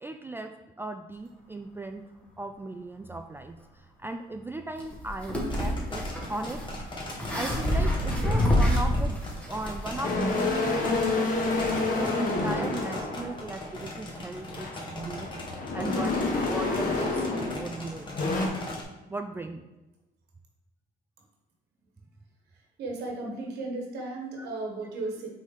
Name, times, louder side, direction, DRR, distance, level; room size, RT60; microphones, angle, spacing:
voice 1, 0.0-0.5 0.8-2.1 2.4-6.0 6.3-6.6 7.3-11.3 11.8-15.3 15.7-18.2 19.1-19.6 24.4-24.5, right 2 dB, 15° right, 6 dB, 0.3 m, -37 dB
sound 1, 4.8-10.0, equal, 5° left, 1.7 m, -27 dB
sound 2, 5.4-18.8, left 1 dB, 30° left, 1.4 m, -40 dB
sound 3, 10.0-13.9 14.4-17.8 18.1-18.5, left 3 dB, 55° left, 1.2 m, -28 dB
voice 2, 22.8-25.3, right 2 dB, 75° right, 0 dB, 1.3 m, -35 dB
5.5 x 4.1 x 4.9 m, 1.0 s
cardioid pair, 110°, 17 cm